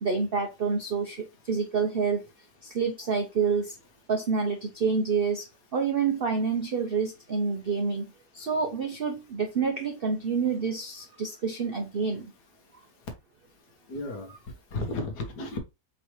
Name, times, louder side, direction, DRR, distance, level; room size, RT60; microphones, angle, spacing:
voice 1, 0.0-2.2 2.6-3.8 4.1-12.3, right 5 dB, 60° right, 0.5 m, -28 dB
voice 2, 13.9-15.6, left 2 dB, 65° left, 1.7 m, -34 dB
4.9 x 3.3 x 3.0 m
omnidirectional pair, 1.9 m